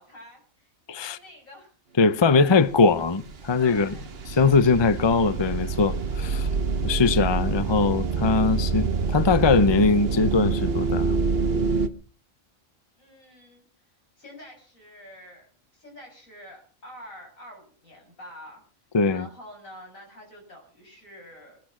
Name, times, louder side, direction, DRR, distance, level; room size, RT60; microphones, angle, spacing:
voice 1, 0.0-1.7 2.3-2.7 3.6-4.1 5.8-6.5 13.0-13.6 14.2-15.5 15.7-18.6 19.1-21.6, left 1 dB, 85° left, 7.5 m, -47 dB
voice 2, 2.0-3.9 4.3-6.5 6.8-11.1 18.9-19.3, left 4 dB, 25° left, 0.6 m, -21 dB
sound 1, 2.8-3.0 3.3-11.9, right 4 dB, 50° right, 1.3 m, -26 dB
21.0 x 10.0 x 6.0 m
omnidirectional pair, 1.4 m